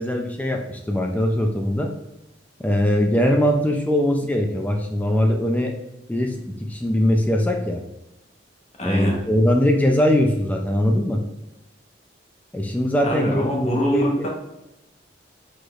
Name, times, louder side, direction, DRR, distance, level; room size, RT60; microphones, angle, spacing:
voice 1, 0.0-1.9 2.6-5.7 6.1-7.8 8.8-11.2 12.5-14.3, left 1 dB, 10° left, 2 dB, 0.3 m, -21 dB
voice 2, 8.8-9.2 13.0-14.3, equal, 35° left, -2 dB, 1.0 m, -24 dB
4.9 x 4.1 x 2.4 m, 0.91 s
head